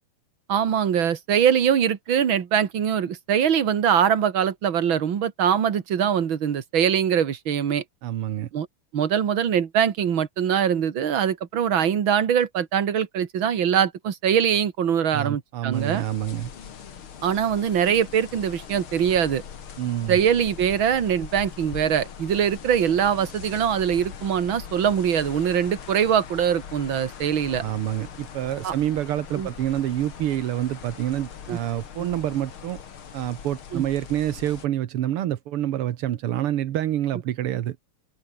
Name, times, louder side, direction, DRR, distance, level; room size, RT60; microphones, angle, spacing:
voice 1, 0.5-7.8 8.5-8.7 8.9-16.0 17.2-19.4 20.1-27.6 28.6-28.7 29.4-29.5 31.5-31.6 32.0-32.1 33.7-33.8, right 8 dB, 65° right, 2.5 m, -22 dB
voice 2, 8.0-8.5 15.1-16.5 19.8-20.2 27.6-32.8 33.1-37.8, right 12 dB, 80° right, 2.0 m, -27 dB
sound 1, 15.7-34.7, left 7 dB, 70° left, 2.8 m, -41 dB
open air
omnidirectional pair, 2.4 m